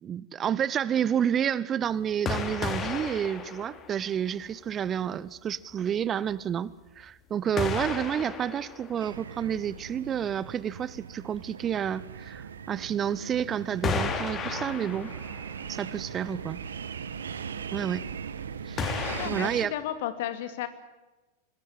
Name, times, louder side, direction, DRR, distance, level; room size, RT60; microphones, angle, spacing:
voice 1, 0.0-15.1 15.7-16.6 17.7-18.0 18.7-18.8 19.2-19.7, right 9 dB, 25° right, 20 dB, 0.7 m, -30 dB
sound 1, 2.3-4.4 4.9-5.0 7.6-9.5 12.3-12.4 13.8-15.8 16.1-16.2 18.8-19.3, left 5 dB, 25° left, 3.2 m, -33 dB
sound 2, 9.0-19.7, right 7 dB, 70° right, 1.2 m, -39 dB
voice 2, 19.2-20.7, left 11 dB, 55° left, 10 dB, 2.5 m, -33 dB
25.0 x 20.0 x 7.5 m, 1.1 s
figure-of-eight pair, 90°, 0 cm